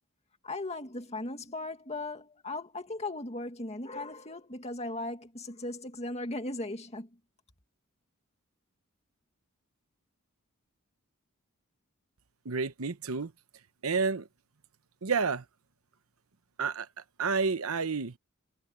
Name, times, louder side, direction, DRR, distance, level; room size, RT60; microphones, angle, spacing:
voice 1, 0.4-7.1, left 2 dB, 30° left, 2.3 m, -37 dB
voice 2, 12.5-13.3 13.8-14.2 15.0-15.4 16.6-16.9 17.2-18.1, right 5 dB, 80° right, 1.0 m, -29 dB
head